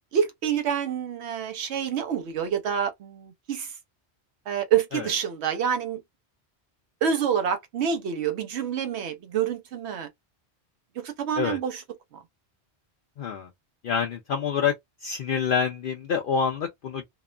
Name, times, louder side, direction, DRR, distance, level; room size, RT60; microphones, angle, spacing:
voice 1, 0.1-3.7 4.5-6.0 7.0-10.1 11.0-11.8, right 8 dB, 85° right, 0.9 m, -27 dB
voice 2, 13.2-13.5 13.8-14.7 15.0-17.1, left 6 dB, 60° left, 0.7 m, -27 dB
2.8 x 2.0 x 2.3 m
omnidirectional pair, 1.1 m